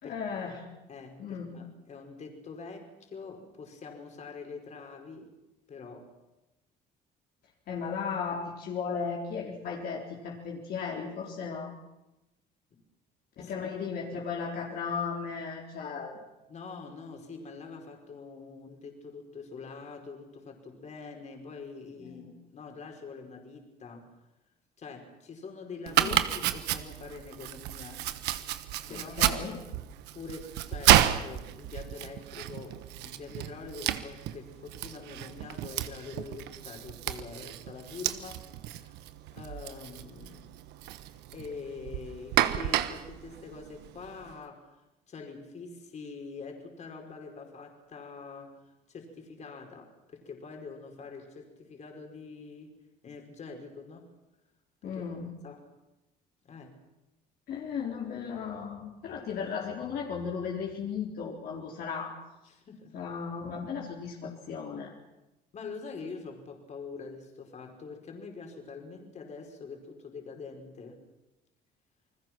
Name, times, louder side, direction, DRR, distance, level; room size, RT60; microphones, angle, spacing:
voice 1, 0.0-0.6 1.2-1.5 7.7-11.7 13.4-16.2 22.0-22.3 26.0-26.2 28.9-29.5 54.8-55.3 57.5-62.2 62.9-64.9, left 6 dB, 65° left, -2 dB, 4.0 m, -36 dB
voice 2, 0.9-5.3 5.7-6.1 12.7-12.8 13.4-13.9 16.5-24.1 24.8-28.0 28.9-29.4 30.1-38.4 38.8-38.9 39.3-40.6 41.3-44.7 45.1-52.7 53.0-54.1 54.8-55.0 55.4-55.6 56.4-56.8 62.5-63.1 65.5-71.0, left 4 dB, 45° left, 3 dB, 5.0 m, -45 dB
Domestic sounds home sounds, 25.9-44.3, right 13 dB, 90° right, 1.3 m, -31 dB
28.5 x 20.5 x 6.1 m, 1.0 s
cardioid pair, 110°, 17 cm